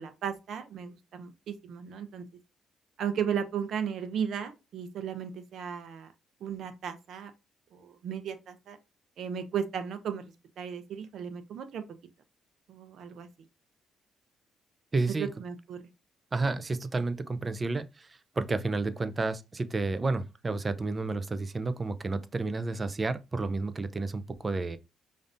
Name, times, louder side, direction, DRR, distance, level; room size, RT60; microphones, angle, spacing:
voice 1, 0.0-2.3 3.0-6.1 6.4-7.3 7.7-8.8 9.2-10.2 10.6-11.8 12.7-13.3 15.2-15.8, right 7 dB, 70° right, 0.7 m, -35 dB
voice 2, 14.9-15.3 16.3-24.8, right 3 dB, 30° right, 0.5 m, -31 dB
5.1 x 2.6 x 2.5 m
cardioid pair, 90°, 0 cm